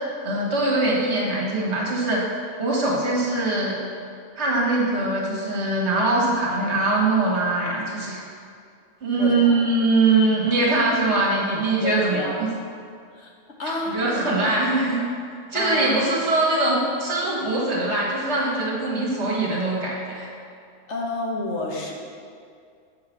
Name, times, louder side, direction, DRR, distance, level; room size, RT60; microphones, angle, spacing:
voice 1, 0.2-2.2 2.6-3.8 4.4-8.2 9.0-12.3 13.9-15.0 15.5-20.3, right 2 dB, 65° right, -4 dB, 1.7 m, -22 dB
voice 2, 9.2-9.6 11.8-12.4 13.1-13.3 13.6-14.0 15.5-16.0 20.9-21.9, left 2 dB, 65° left, -1 dB, 1.2 m, -29 dB
6.6 x 4.7 x 5.8 m, 2.3 s
omnidirectional pair, 1.3 m